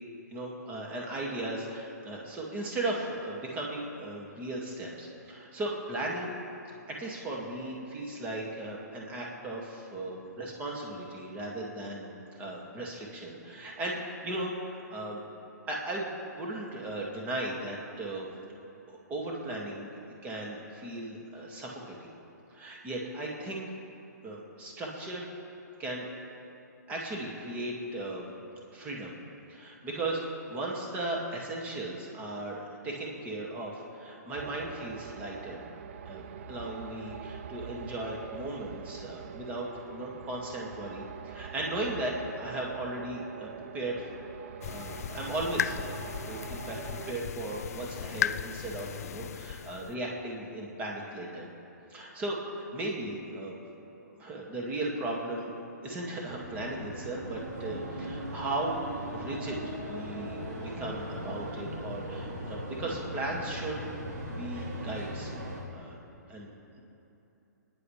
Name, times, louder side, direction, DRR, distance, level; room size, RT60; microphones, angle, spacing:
voice 1, 0.3-6.4 6.9-15.2 15.7-18.3 18.9-19.9 20.2-22.1 22.5-23.7 24.2-25.2 25.8-26.1 26.9-28.3 28.7-29.1 29.5-35.6 36.1-44.0 44.6-46.0 46.2-46.8 47.1-51.5 51.9-53.5 54.0-55.5 55.8-58.8 59.1-59.6 59.8-63.8 64.2-65.3 65.7-66.0 66.3-66.5, right 2 dB, 15° right, -2 dB, 2.2 m, -36 dB
sound 1, 34.3-47.1, right 8 dB, 45° right, 0.5 m, -44 dB
sound 2, 44.6-49.9, left 9 dB, 55° left, 0.4 m, -36 dB
sound 3, 56.3-65.6, equal, 65° right, 3.7 m, -39 dB
30.0 x 10.5 x 3.4 m, 2.9 s
hypercardioid pair, 160°, 10 cm